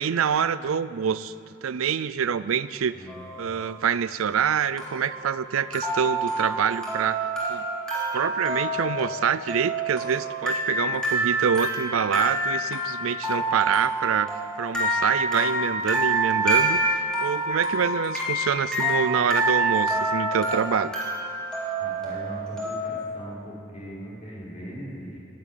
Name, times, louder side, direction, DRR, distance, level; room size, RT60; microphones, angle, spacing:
voice 1, 0.0-1.3 1.6-2.9 3.4-7.6 8.1-14.3 14.6-20.9, right 7 dB, 85° right, 16 dB, 0.4 m, -26 dB
sound 1, 3.1-3.5 4.8-23.0, right 1 dB, 5° left, 3.4 m, -27 dB
voice 2, 21.8-25.2, equal, 30° left, -6 dB, 5.1 m, -39 dB
12.0 x 11.5 x 9.2 m, 2.5 s
head